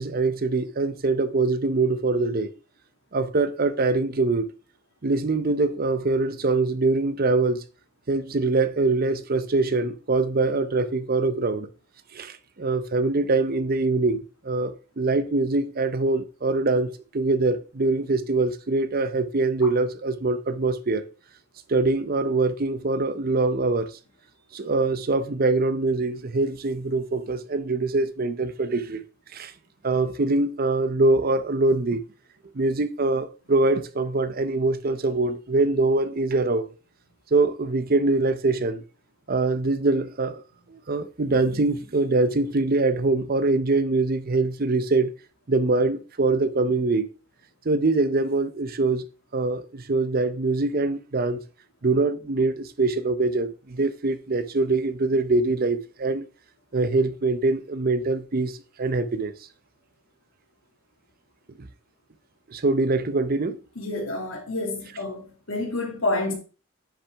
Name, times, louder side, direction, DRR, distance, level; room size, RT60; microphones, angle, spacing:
voice 1, 0.0-2.5 3.1-4.5 5.0-7.6 8.1-11.7 12.1-21.0 21.7-23.9 24.5-29.0 29.3-29.5 29.8-32.0 32.5-36.7 37.3-38.8 39.3-40.4 40.7-45.1 45.5-47.1 47.6-49.0 49.3-51.4 51.8-56.3 56.7-59.3 61.6-61.7 62.5-63.6, right 3 dB, 45° right, 0.7 m, -23 dB
voice 2, 63.8-66.3, left 2 dB, 90° left, 2.5 m, -28 dB
9.8 x 6.0 x 3.4 m
head